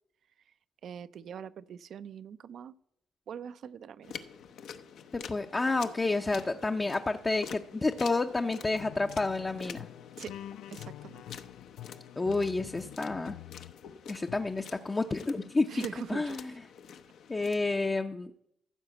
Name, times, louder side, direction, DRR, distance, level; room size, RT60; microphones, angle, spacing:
voice 1, 0.8-2.7 3.3-4.1 10.2-10.3 10.7-11.4 15.7-16.4, right 8 dB, 65° right, 15 dB, 0.5 m, -42 dB
sound 1, 4.0-17.9, left 7 dB, 75° left, 0.7 m, -47 dB
voice 2, 5.1-9.9 12.2-13.4 14.1-15.8 16.1-16.7 17.3-18.4, left 3 dB, 25° left, 4 dB, 0.6 m, -30 dB
sound 2, 8.7-13.8 14.3-14.7, left 13 dB, 90° left, 0.3 m, -47 dB
14.5 x 4.9 x 7.8 m, 0.75 s
cardioid pair, 90°, 0 cm